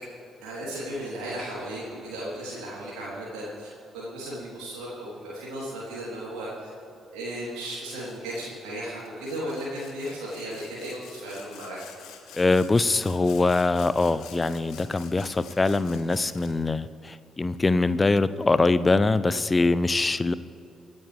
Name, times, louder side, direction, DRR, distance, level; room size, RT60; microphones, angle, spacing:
voice 1, 0.4-3.7 3.9-6.7 7.1-11.8, right 1 dB, 65° right, -7 dB, 3.6 m, -35 dB
Sawing, 7.9-8.6 9.0-16.7, left 8 dB, 60° left, 1.3 m, -49 dB
voice 2, 12.3-20.3, left 3 dB, 25° left, 15 dB, 0.6 m, -23 dB
26.0 x 9.7 x 3.5 m, 2.7 s
figure-of-eight pair, 40°, 0 cm